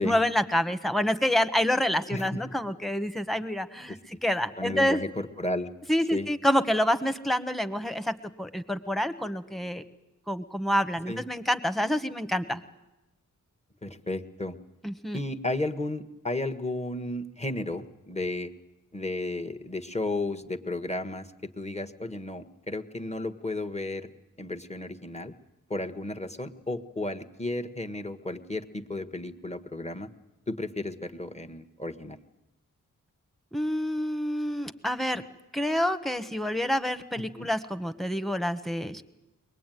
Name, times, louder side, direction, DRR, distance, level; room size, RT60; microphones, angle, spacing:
voice 1, 0.0-5.0 5.9-9.8 10.3-12.6 14.8-15.2 33.5-35.2 35.5-39.0, equal, ahead, 11 dB, 1.4 m, -27 dB
voice 2, 2.1-2.5 3.9-4.2 4.6-5.7 6.1-6.3 11.1-11.2 13.8-14.6 15.1-18.5 18.9-24.1 24.4-25.3 25.7-30.1 30.5-32.2 37.2-37.5, left 2 dB, 20° left, 6 dB, 1.6 m, -33 dB
22.5 x 20.0 x 9.3 m, 1.0 s
cardioid pair, 55°, 32 cm